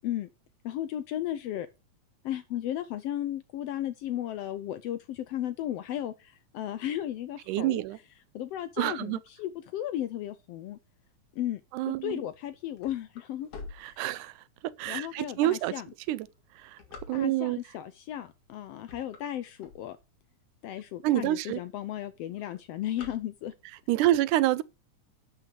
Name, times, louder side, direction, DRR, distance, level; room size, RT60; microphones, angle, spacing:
voice 1, 0.6-1.7 2.2-7.8 8.3-10.8 11.3-11.6 11.9-13.5 13.8-14.0 14.9-15.9 17.1-20.0 20.6-23.5, left 12 dB, 85° left, 1.4 m, -35 dB
voice 2, 7.5-8.0 8.8-9.2 11.7-12.2 13.8-14.3 14.6-15.7 16.1-16.3 16.6-16.8 17.1-17.6 21.0-21.6 23.9-24.6, right 15 dB, 85° right, 2.1 m, -27 dB
sound 1, 12.3-14.6 15.2-15.3 15.9-17.6 18.3-18.5 18.8-20.3 20.8-20.9 21.1-21.2 21.5-21.9 22.1-23.8, left 4 dB, 50° left, 2.9 m, -47 dB
12.0 x 5.7 x 5.2 m
omnidirectional pair, 3.5 m